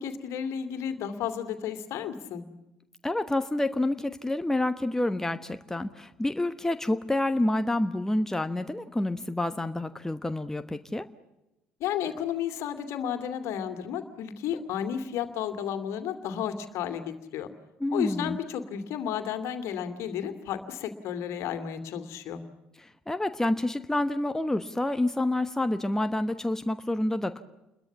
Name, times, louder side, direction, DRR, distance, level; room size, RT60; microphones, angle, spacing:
voice 1, 0.0-2.4 11.8-17.5 17.9-22.4, left 9 dB, 55° left, 9 dB, 2.5 m, -32 dB
voice 2, 3.0-11.1 17.8-18.4 22.8-27.4, left 1 dB, 10° left, 9 dB, 1.2 m, -28 dB
29.0 x 22.0 x 7.2 m, 0.96 s
figure-of-eight pair, 55°, 6 cm